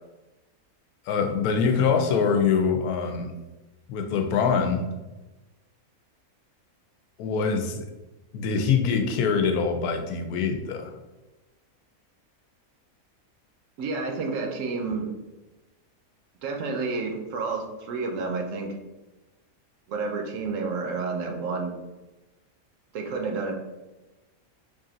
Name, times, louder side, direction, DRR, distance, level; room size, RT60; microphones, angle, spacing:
voice 1, 1.1-3.3 3.9-4.9 7.2-7.8 8.3-10.9, left 6 dB, 85° left, 5 dB, 1.1 m, -24 dB
voice 2, 13.8-15.1 16.4-18.7 19.9-21.7 22.9-23.5, right 4 dB, 70° right, 2 dB, 0.9 m, -30 dB
3.4 x 2.6 x 3.8 m, 1.1 s
omnidirectional pair, 1.5 m